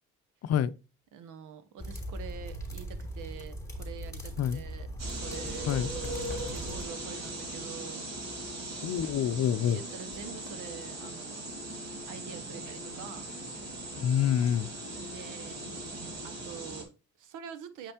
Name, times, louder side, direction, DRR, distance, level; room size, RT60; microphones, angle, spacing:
voice 1, 0.4-0.7 4.4-4.6 5.6-5.9 8.8-9.8 14.0-14.7, left 9 dB, 55° left, 0.6 m, -27 dB
voice 2, 1.1-5.7 6.5-8.0 9.7-11.5 12.1-13.3 15.0-15.6 16.2-17.9, right 7 dB, 85° right, 0.9 m, -46 dB
sound 1, 1.8-6.8, right 1 dB, 10° left, 3.2 m, -40 dB
sound 2, 5.0-16.8, right 2 dB, 60° right, 2.4 m, -39 dB
Fireworks, 6.0-11.1, left 5 dB, 35° left, 1.1 m, -50 dB
7.3 x 5.3 x 2.9 m
cardioid pair, 90°, 30 cm